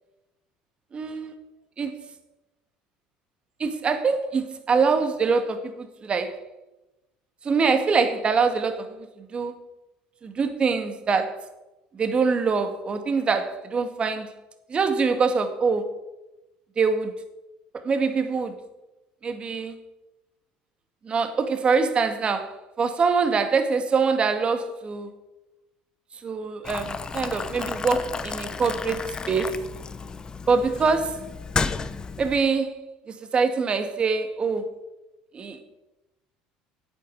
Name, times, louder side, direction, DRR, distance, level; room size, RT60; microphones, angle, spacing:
voice 1, 0.9-1.4 1.8-2.0 3.6-6.4 7.4-9.5 10.2-11.5 11.9-14.3 14.7-15.9 16.8-17.1 17.7-18.6 19.2-19.8 21.0-25.1 26.2-29.6 30.5-31.2 32.2-32.8 33.1-34.7 35.3-35.6, right 5 dB, 35° right, 8 dB, 2.0 m, -24 dB
Boiling, 26.6-32.4, left 4 dB, 25° left, 1.0 m, -32 dB
10.0 x 8.7 x 8.4 m, 0.99 s
supercardioid pair, 85°, 3 cm